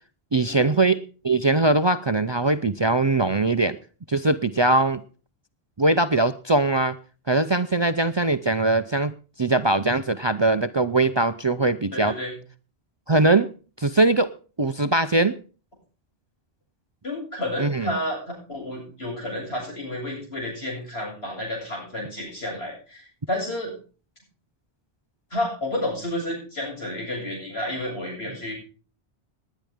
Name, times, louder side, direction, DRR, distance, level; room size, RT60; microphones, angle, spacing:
voice 1, 0.3-3.8 4.1-5.0 5.8-7.0 7.3-9.1 9.4-12.1 13.1-13.5 13.8-14.3 14.6-15.3 17.6-17.9, right 2 dB, 35° right, 12 dB, 0.5 m, -21 dB
voice 2, 11.9-12.3 17.0-23.7 25.3-28.5, left 1 dB, 80° left, -1 dB, 8.1 m, -31 dB
19.5 x 10.0 x 3.5 m, 0.37 s
omnidirectional pair, 1.1 m